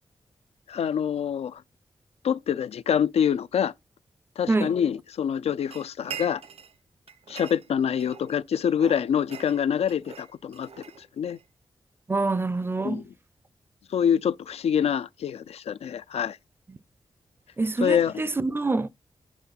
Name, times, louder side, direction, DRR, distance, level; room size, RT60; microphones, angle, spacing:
voice 1, 0.7-1.6 2.2-3.7 4.4-6.4 7.3-10.7 11.0-11.4 12.8-13.0 13.9-16.4 17.8-18.1, left 8 dB, 90° left, 0.4 m, -26 dB
sound 1, 5.7-6.8 7.1-8.4 8.8-11.4, right 8 dB, 80° right, 1.0 m, -43 dB
voice 2, 12.1-13.0 17.6-18.9, right 3 dB, 20° right, 0.4 m, -26 dB
8.1 x 3.6 x 5.6 m
wide cardioid pair, 125°, 10 cm